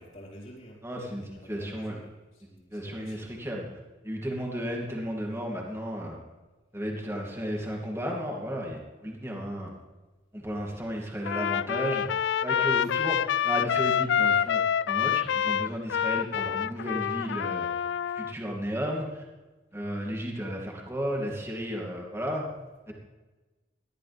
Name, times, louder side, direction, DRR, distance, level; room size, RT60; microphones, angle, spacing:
voice 1, 0.0-3.4 4.6-4.8 7.0-7.3 12.8-13.0, equal, 40° left, -8 dB, 4.3 m, -49 dB
voice 2, 0.8-2.0 2.7-3.7 4.0-6.2 6.7-9.8 10.3-12.1 12.4-14.6 14.9-17.7 18.1-19.2 19.7-22.5 22.9-23.0, equal, 15° right, -1 dB, 2.6 m, -33 dB
Trumpet, 11.2-18.3, left 8 dB, 65° left, 0.3 m, -27 dB
19.5 x 12.5 x 3.5 m, 1.2 s
head